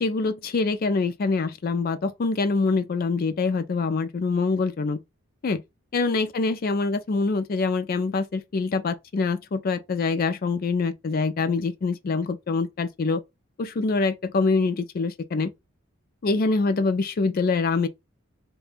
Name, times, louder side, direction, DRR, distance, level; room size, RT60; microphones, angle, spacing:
voice 1, 0.0-5.0 5.4-5.6 5.9-13.2 13.6-15.5 16.2-17.9, left 4 dB, 45° left, 0.4 m, -25 dB
2.5 x 2.2 x 3.6 m
head